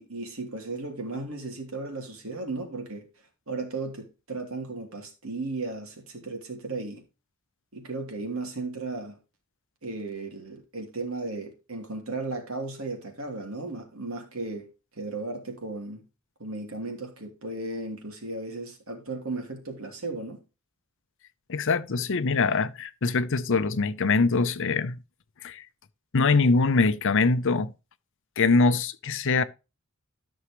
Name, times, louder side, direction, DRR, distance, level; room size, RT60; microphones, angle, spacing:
voice 1, 0.0-3.0 3.5-7.0 7.7-9.2 9.8-14.7 14.9-16.0 16.4-20.4, right 3 dB, 70° right, 3.0 m, -35 dB
voice 2, 21.5-25.0 25.4-25.6 26.1-27.7 28.4-29.4, left 4 dB, 60° left, 0.7 m, -23 dB
13.0 x 6.3 x 3.1 m
head